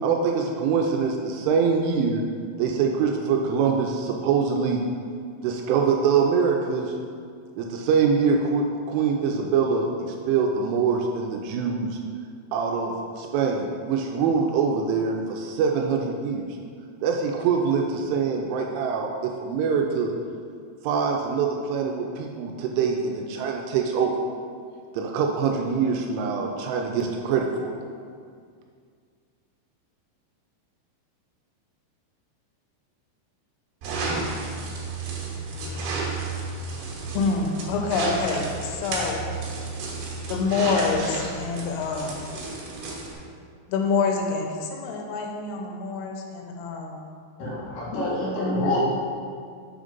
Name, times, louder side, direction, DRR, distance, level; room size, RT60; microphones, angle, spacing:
voice 1, 0.0-2.2 2.6-4.8 5.4-6.9 7.6-12.0 12.5-16.5 17.0-19.1 19.4-20.1 20.8-24.1 24.9-27.7, right 5 dB, 85° right, 1 dB, 2.9 m, -24 dB
sound 1, 33.8-43.2, right 3 dB, 70° right, 2.6 m, -32 dB
voice 2, 37.1-39.2 40.3-42.2 43.7-47.0 48.2-48.7, left 4 dB, 85° left, 2 dB, 3.2 m, -27 dB
voice 3, 47.4-48.8, left 2 dB, 70° left, -7 dB, 3.2 m, -27 dB
6.8 x 3.7 x 5.1 m, 2.1 s
omnidirectional pair, 5.8 m